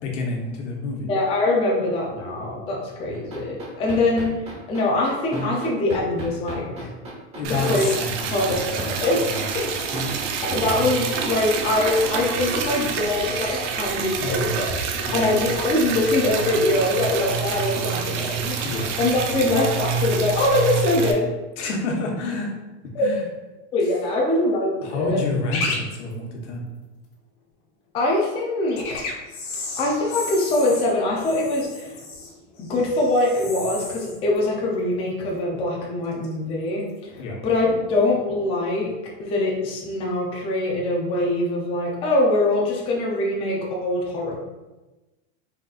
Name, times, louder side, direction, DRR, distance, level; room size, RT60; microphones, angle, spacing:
voice 1, 0.0-1.1 7.3-8.9 9.3-9.5 14.2-14.6 15.0-15.3 18.6-18.9 19.4-19.5 21.6-22.5 23.0-23.2 24.8-26.6 37.2-37.4, left 2 dB, 75° left, 0 dB, 1.1 m, -29 dB
voice 2, 1.1-4.3 4.7-6.9 7.4-7.9 8.3-9.2 9.5-9.7 10.5-14.8 15.1-21.3 21.6-21.7 22.9-23.1 23.7-25.2 27.9-29.1 29.8-31.9 32.6-36.8 37.2-38.9 39.2-44.4, left 2 dB, 15° left, -2 dB, 0.4 m, -23 dB
sound 1, 3.1-10.6, right 1 dB, 15° right, 0.9 m, -32 dB
Liquid, 7.4-21.1, right 6 dB, 80° right, 0.7 m, -27 dB
sound 2, 25.5-25.8 26.1-26.2 28.7-35.5 35.8-36.3 37.0-37.2, left 3 dB, 50° left, 1.1 m, -34 dB
4.1 x 3.7 x 2.4 m, 1.1 s
supercardioid pair, 160°, 36 cm